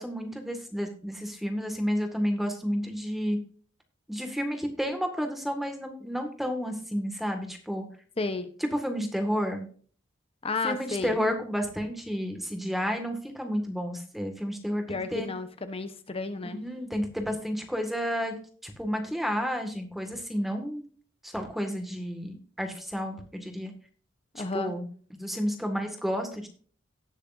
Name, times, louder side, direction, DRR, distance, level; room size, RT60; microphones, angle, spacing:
voice 1, 0.0-3.4 4.1-7.8 8.6-9.7 10.6-15.3 16.4-18.3 18.6-20.8 21.2-23.7 24.4-24.9 25.2-26.5, equal, ahead, 4 dB, 1.7 m, -31 dB
voice 2, 8.2-8.5 10.4-11.2 14.9-16.6 24.4-24.7, left 3 dB, 30° left, 10 dB, 0.8 m, -32 dB
18.0 x 6.6 x 2.6 m, 0.43 s
head